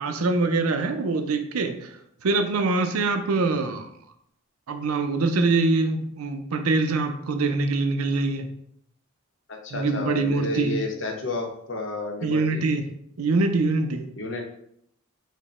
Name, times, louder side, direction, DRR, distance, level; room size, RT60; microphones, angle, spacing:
voice 1, 0.0-1.9 2.2-3.9 4.7-8.5 9.7-10.8 12.2-12.8 13.2-14.1, right 3 dB, 85° right, 7 dB, 0.5 m, -24 dB
voice 2, 9.5-12.6 14.2-14.4, left 2 dB, 60° left, 2 dB, 0.8 m, -31 dB
5.0 x 2.1 x 4.1 m, 0.72 s
head